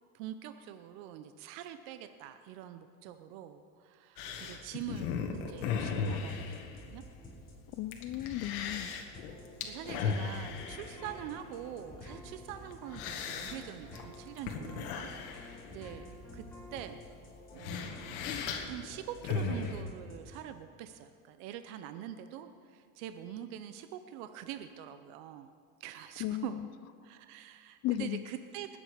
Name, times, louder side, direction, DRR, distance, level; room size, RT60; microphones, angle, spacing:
voice 1, 0.1-6.4 6.8-7.0 9.6-16.1 16.3-16.4 16.7-17.0 17.5-25.5 25.8-26.6 27.0-28.8, right 10 dB, 75° right, 9 dB, 0.8 m, -44 dB
sound 1, 4.2-19.8, left 6 dB, 80° left, 1.9 m, -38 dB
sound 2, 5.3-20.6, left 1 dB, 20° left, 4.4 m, -52 dB
voice 2, 7.7-8.9 26.2-26.7 27.8-28.2, left 14 dB, 40° left, 16 dB, 0.4 m, -35 dB
sound 3, 9.8-17.2, left 1 dB, 5° left, 2.2 m, -54 dB
20.5 x 8.8 x 5.0 m, 2.2 s
supercardioid pair, 130°, 42 cm